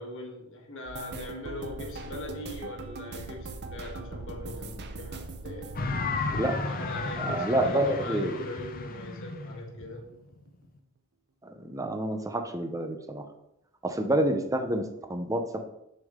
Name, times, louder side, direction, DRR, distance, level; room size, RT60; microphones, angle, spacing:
voice 1, 0.0-5.8 6.6-10.0, left 1 dB, 65° left, 0 dB, 1.4 m, -41 dB
sound 1, 0.9-7.7 8.0-9.0 9.3-9.6 10.0-10.2, right 3 dB, 50° right, 0.6 m, -41 dB
Hover engine, 5.8-10.7, left 3 dB, 40° left, 0.6 m, -33 dB
voice 2, 6.3-6.6 7.2-8.4 11.4-13.3 13.8-15.4, right 1 dB, 15° right, 5 dB, 0.7 m, -28 dB
6.4 x 5.6 x 3.6 m, 0.82 s
head